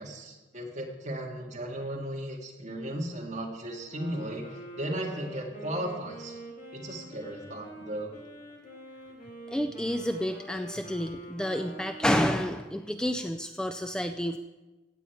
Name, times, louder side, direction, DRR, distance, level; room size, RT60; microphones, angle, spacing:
voice 1, 0.0-4.5 4.7-6.4 6.7-8.1, right 1 dB, 40° right, -1 dB, 2.0 m, -36 dB
Wind instrument woodwind instrument, 3.8-12.7, right 1 dB, 45° left, 2.6 m, -45 dB
voice 2, 9.5-14.4, equal, 5° left, 6 dB, 0.3 m, -29 dB
16.0 x 8.5 x 4.7 m, 1.2 s
head